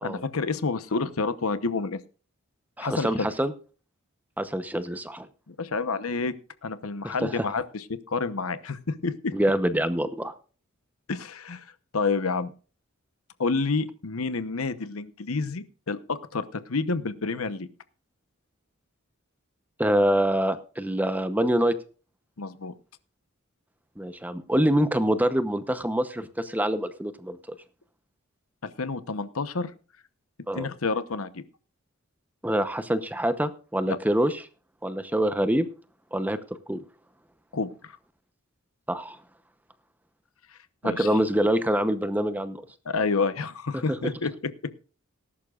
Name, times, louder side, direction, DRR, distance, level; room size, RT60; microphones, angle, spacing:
voice 1, 0.0-2.0 2.8-3.3 5.5-6.4 6.6-9.3 11.1-11.7 11.9-12.5 13.4-17.7 22.4-22.7 28.6-29.7 30.5-31.4 33.9-34.0 37.5-38.0 40.8-41.1 42.9-44.5, left 4 dB, 90° left, 12 dB, 0.9 m, -29 dB
voice 2, 2.8-3.5 4.4-5.3 7.0-7.4 9.3-10.3 19.8-21.7 24.0-27.4 30.5-30.7 32.4-34.4 34.8-35.7 36.1-36.4 36.7-36.8 38.9-39.2 40.8-42.6 43.7-43.8, right 1 dB, 10° right, 11 dB, 0.8 m, -25 dB
19.0 x 11.0 x 2.4 m, 0.37 s
head